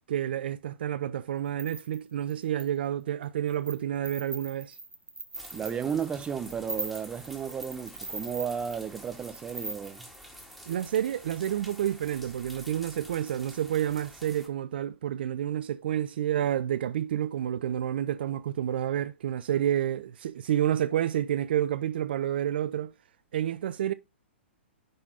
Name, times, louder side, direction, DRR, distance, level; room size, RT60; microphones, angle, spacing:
voice 1, 0.1-4.8 10.7-22.9 23.3-23.9, right 11 dB, 55° right, 0.4 m, -29 dB
sound 1, 1.5-2.7 3.2-3.8 4.0-10.2, right 2 dB, 85° right, 1.4 m, -40 dB
sound 2, 5.3-14.5, equal, ahead, 2.1 m, -49 dB
voice 2, 5.5-10.1, right 7 dB, 15° right, 0.8 m, -33 dB
10.0 x 4.0 x 4.1 m
figure-of-eight pair, 110°, 6 cm